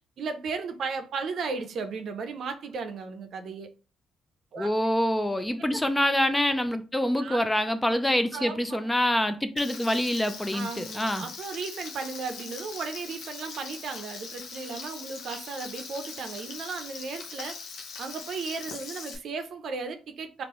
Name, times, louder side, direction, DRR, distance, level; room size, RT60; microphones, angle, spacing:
voice 1, 0.0-3.7 4.5-4.7 7.2-7.6 8.3-8.8 10.5-17.6 18.0-20.4, right 4 dB, 65° right, 0.5 m, -35 dB
voice 2, 4.6-11.3, left 1 dB, 10° left, 0.4 m, -26 dB
Frying (food), 9.6-19.1, left 5 dB, 80° left, 0.7 m, -41 dB
3.6 x 2.4 x 3.0 m
cardioid pair, 90°, 0 cm